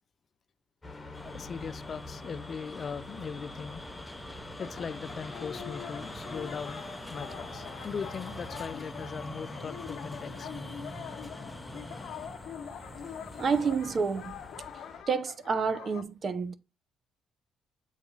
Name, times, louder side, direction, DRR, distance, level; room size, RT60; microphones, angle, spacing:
sound 1, 0.8-15.0, left 2 dB, 20° left, 1.2 m, -48 dB
sound 2, 1.1-15.0, left 1 dB, ahead, 0.8 m, -44 dB
voice 1, 1.2-3.8 4.6-6.8 7.1-10.5, left 6 dB, 45° left, 0.4 m, -39 dB
sound 3, 4.6-16.0, left 9 dB, 75° left, 0.8 m, -44 dB
voice 2, 13.4-14.4 15.1-16.5, right 5 dB, 45° right, 0.7 m, -29 dB
7.3 x 4.0 x 3.8 m
cardioid pair, 90°, 0 cm